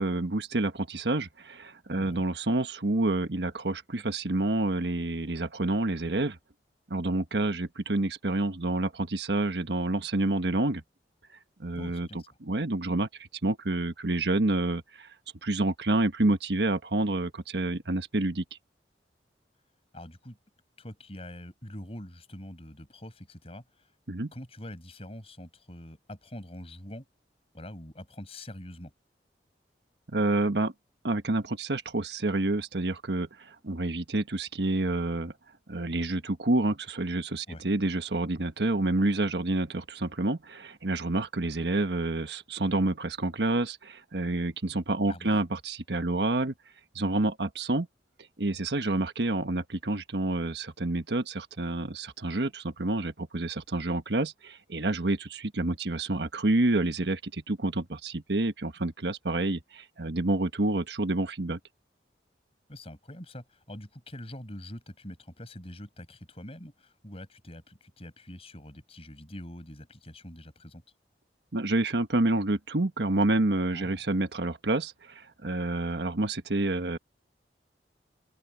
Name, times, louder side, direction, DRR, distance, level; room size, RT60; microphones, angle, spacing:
voice 1, 0.0-6.4 6.9-10.8 11.6-13.1 13.4-15.1 15.4-18.4 24.1-24.3 30.1-30.7 31.0-35.3 35.7-46.5 46.9-47.9 48.4-61.6 71.5-77.0, right 2 dB, 75° right, 1.3 m, -28 dB
voice 2, 11.7-12.3 19.9-20.4 20.8-23.6 24.3-27.0 27.5-28.9 37.5-37.6 45.1-45.3 62.7-70.8 73.7-74.0, left 1 dB, 35° left, 6.6 m, -44 dB
open air
head